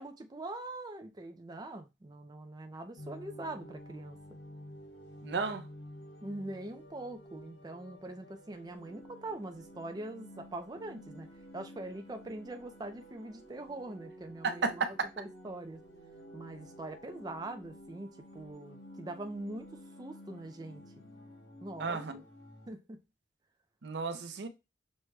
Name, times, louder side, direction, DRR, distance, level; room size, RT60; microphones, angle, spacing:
voice 1, 0.0-4.2 6.2-11.3 11.5-15.8 16.3-19.7 20.0-20.8 21.6-22.2 22.7-23.0, right 2 dB, 25° right, 0.4 m, -43 dB
sound 1, 3.0-22.7, equal, 85° left, 1.8 m, -52 dB
voice 2, 5.2-5.6 14.4-14.9 21.8-22.2 23.8-24.5, right 4 dB, 70° right, 0.6 m, -33 dB
6.3 x 2.2 x 3.3 m
head